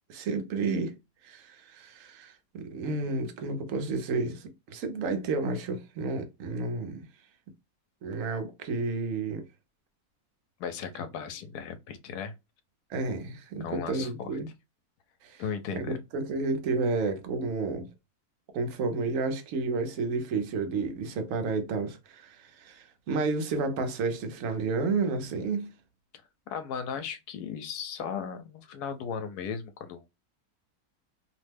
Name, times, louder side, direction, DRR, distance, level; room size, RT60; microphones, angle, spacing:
voice 1, 0.1-0.9 1.2-7.0 8.0-9.4 12.9-14.5 15.2-15.4 15.7-17.9 18.5-25.7, right 3 dB, 65° right, 1.0 m, -31 dB
voice 2, 10.6-12.3 13.6-14.4 15.4-16.0 26.5-30.1, left 7 dB, 90° left, 1.1 m, -36 dB
2.9 x 2.1 x 3.2 m
omnidirectional pair, 1.6 m